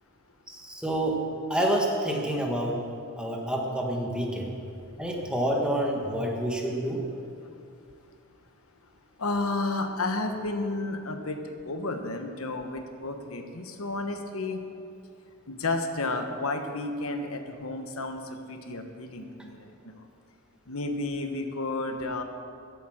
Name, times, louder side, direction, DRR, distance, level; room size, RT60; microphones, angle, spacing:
voice 1, 0.5-1.2 1.5-2.8 3.2-4.5 5.0-7.0, right 1 dB, 5° right, 0 dB, 1.5 m, -28 dB
voice 2, 9.2-14.6 15.5-20.0 20.7-22.2, left 2 dB, 80° left, 6 dB, 1.2 m, -32 dB
15.0 x 8.3 x 6.4 m, 2.5 s
head